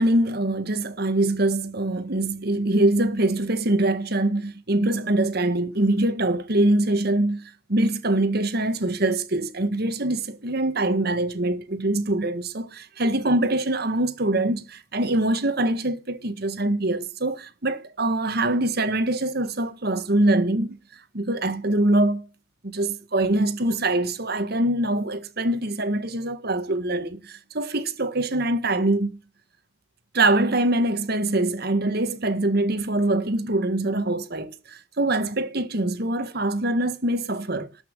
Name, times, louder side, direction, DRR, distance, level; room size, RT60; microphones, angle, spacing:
voice 1, 0.0-20.8 21.1-22.2 22.6-29.2 30.1-37.8, right 1 dB, 55° right, 1.6 m, -24 dB
13.0 x 6.0 x 8.9 m
head